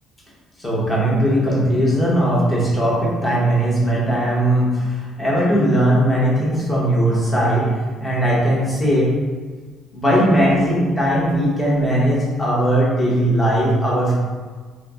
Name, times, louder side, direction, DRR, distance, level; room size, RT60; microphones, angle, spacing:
voice 1, 0.6-7.7 8.0-9.1 9.9-14.1, right 1 dB, 10° left, -6 dB, 0.9 m, -18 dB
4.0 x 2.0 x 3.5 m, 1.5 s
cardioid pair, 160°, 0 cm